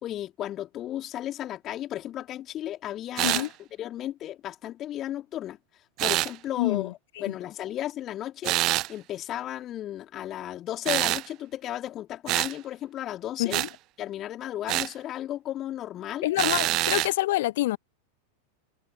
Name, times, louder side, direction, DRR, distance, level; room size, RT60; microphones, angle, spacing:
voice 1, 0.0-3.5 3.8-5.6 6.0-6.9 7.2-8.6 8.9-13.6 14.0-16.3, left 12 dB, 30° left, 3.4 m, -34 dB
sound 1, 3.2-3.5 6.0-6.3 8.4-8.9 10.9-11.3 12.3-12.5 13.5-13.7 14.7-14.9 16.4-17.1, right 18 dB, 40° right, 0.7 m, -25 dB
voice 2, 6.6-6.9 7.3-7.4 13.4-13.7 16.2-17.8, left 16 dB, 55° left, 0.6 m, -26 dB
figure-of-eight pair, 90°, 0 cm